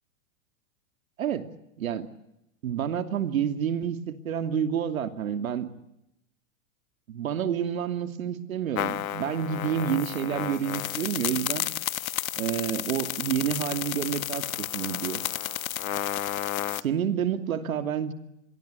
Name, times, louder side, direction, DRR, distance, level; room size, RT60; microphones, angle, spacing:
voice 1, 2.6-5.7 7.1-11.7 12.4-15.2 16.8-18.1, right 8 dB, 80° right, 8 dB, 2.9 m, -29 dB
sound 1, 8.8-16.8, left 12 dB, 80° left, 1.3 m, -32 dB
27.0 x 22.5 x 8.2 m, 0.85 s
hypercardioid pair, 130°, 41 cm